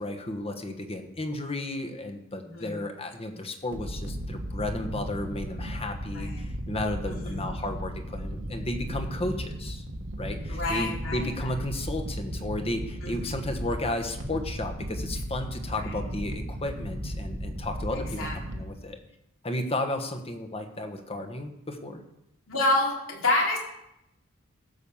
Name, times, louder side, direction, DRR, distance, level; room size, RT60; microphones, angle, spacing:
voice 1, 0.0-9.8 10.2-19.0 19.4-22.0, left 1 dB, 30° left, 5 dB, 1.3 m, -33 dB
voice 2, 2.4-2.8 6.1-6.5 7.1-7.5 10.5-11.5 13.0-13.3 15.8-15.9 17.9-18.4 22.5-23.6, left 2 dB, 75° left, -2 dB, 3.4 m, -29 dB
sound 1, 3.7-18.8, equal, 65° right, 1.5 m, -35 dB
16.0 x 5.9 x 7.2 m, 0.83 s
head